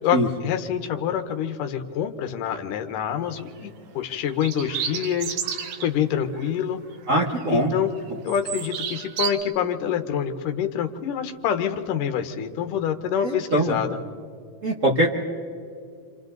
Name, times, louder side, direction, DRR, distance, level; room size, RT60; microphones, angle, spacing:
voice 1, 0.0-5.4 5.8-6.8 7.5-7.9 8.2-14.0, left 8 dB, 75° left, 7 dB, 2.7 m, -26 dB
sound 1, 3.2-3.5 4.3-5.9 6.3-6.5 6.9-7.7 8.0-9.3, right 8 dB, 85° right, 3.0 m, -31 dB
voice 2, 7.1-7.7 8.1-8.2 13.2-13.8 14.6-15.3, right 1 dB, 60° right, -1 dB, 0.8 m, -22 dB
28.5 x 27.0 x 4.0 m, 2.2 s
omnidirectional pair, 3.9 m